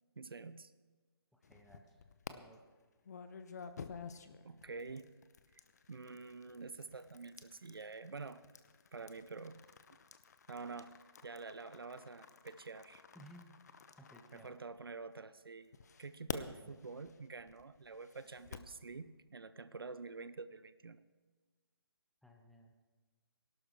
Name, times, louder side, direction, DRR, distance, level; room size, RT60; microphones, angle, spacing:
voice 1, 0.2-0.7 4.2-5.1 5.9-8.4 8.9-9.6 10.5-10.9 11.2-13.0 14.3-15.7 16.0-21.0, right 4 dB, 65° right, 14 dB, 0.7 m, -48 dB
voice 2, 1.3-2.0 2.3-2.6 13.1-13.6 14.0-14.6 16.6-16.8 22.2-22.7, equal, ahead, 1 dB, 0.5 m, -58 dB
sound 1, 1.4-2.3 3.0-15.1 15.7-18.8, left 6 dB, 45° left, 0.8 m, -51 dB
20.5 x 12.0 x 3.6 m, 1.4 s
figure-of-eight pair, 145°, 13 cm